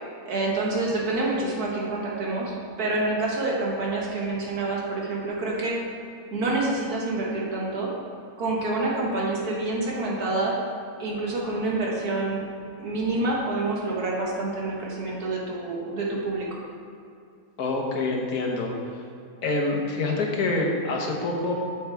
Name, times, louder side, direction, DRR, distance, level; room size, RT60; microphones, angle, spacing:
voice 1, 0.3-5.8 6.3-7.9 8.4-10.6 11.0-12.5 12.8-16.5, right 2 dB, 85° right, -3 dB, 1.8 m, -27 dB
voice 2, 17.6-18.7 19.4-21.5, left 2 dB, 85° left, 0 dB, 1.6 m, -26 dB
7.8 x 7.3 x 3.4 m, 2.4 s
omnidirectional pair, 1.6 m